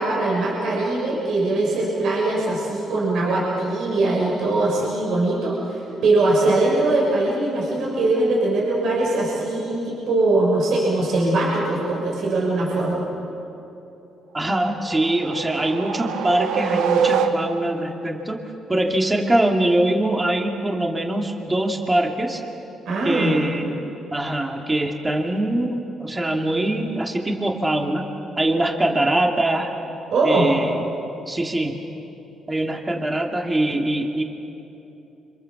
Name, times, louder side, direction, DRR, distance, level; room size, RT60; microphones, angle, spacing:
voice 1, 0.0-13.0 22.8-23.3 30.1-30.5, right 2 dB, 70° right, -4 dB, 6.4 m, -21 dB
voice 2, 14.3-18.4 18.7-22.4 23.0-23.7 24.1-28.1 28.4-29.7 30.2-30.8 31.3-31.8 32.5-34.2, right 1 dB, 20° right, 2 dB, 2.6 m, -23 dB
sound 1, 14.6-17.8, right 6 dB, 90° right, 1.5 m, -24 dB
29.0 x 26.5 x 7.3 m, 3.0 s
cardioid pair, 90°, 0 cm